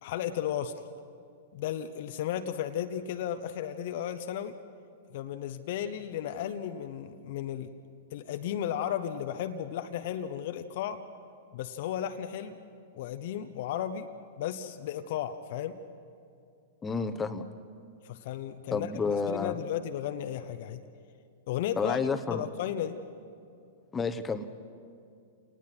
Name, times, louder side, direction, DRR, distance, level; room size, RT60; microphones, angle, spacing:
voice 1, 0.0-0.7 1.5-4.5 5.1-7.7 8.1-11.0 11.5-12.6 12.9-14.1 14.4-15.8 18.0-20.8 21.5-23.0, left 10 dB, 55° left, 9 dB, 0.9 m, -34 dB
voice 2, 16.8-17.4 18.7-19.6 21.8-22.4 23.9-24.5, left 4 dB, 15° left, 9 dB, 1.2 m, -30 dB
29.0 x 19.0 x 6.2 m, 2.4 s
figure-of-eight pair, 105°, 0 cm